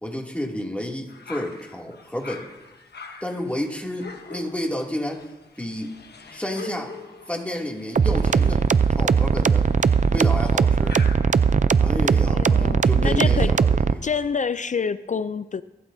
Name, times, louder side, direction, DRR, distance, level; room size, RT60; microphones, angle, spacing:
voice 1, 0.0-2.5 3.2-5.3 5.6-6.0 6.3-7.0 7.3-8.6 8.9-9.7 10.1-11.0 11.8-14.0, left 1 dB, 10° left, -1 dB, 2.6 m, -30 dB
sound 1, 1.1-12.1, left 4 dB, 75° left, 1.2 m, -44 dB
sound 2, 8.0-13.9, right 6 dB, 45° right, 0.5 m, -19 dB
voice 2, 12.3-13.5 14.0-15.6, left 5 dB, 45° left, 14 dB, 0.4 m, -27 dB
23.0 x 12.5 x 2.7 m, 1.1 s
cardioid pair, 50°, 17 cm